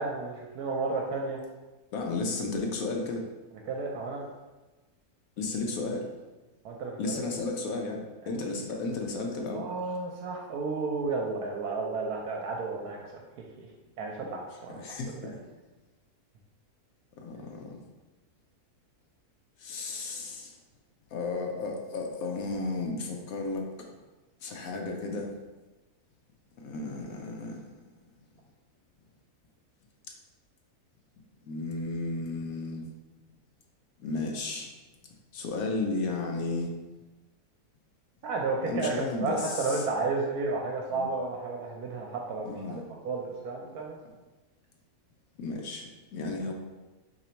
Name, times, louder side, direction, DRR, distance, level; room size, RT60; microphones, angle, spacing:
voice 1, 0.0-1.4 3.7-4.2 6.6-7.2 8.2-8.4 9.5-13.7 14.0-14.8 15.2-15.3 38.2-42.6 43.0-44.0, right 3 dB, 75° right, -1 dB, 1.1 m, -32 dB
voice 2, 1.9-3.3 5.4-6.1 7.0-9.7 14.7-15.4 17.2-17.8 19.6-20.6 21.1-23.9 24.4-25.3 26.6-27.6 31.4-32.9 34.0-34.7 35.3-36.7 38.6-39.9 40.9-41.1 42.4-42.9 45.4-46.5, left 3 dB, 70° left, 1 dB, 1.0 m, -33 dB
3.9 x 3.0 x 4.3 m, 1.1 s
omnidirectional pair, 1.6 m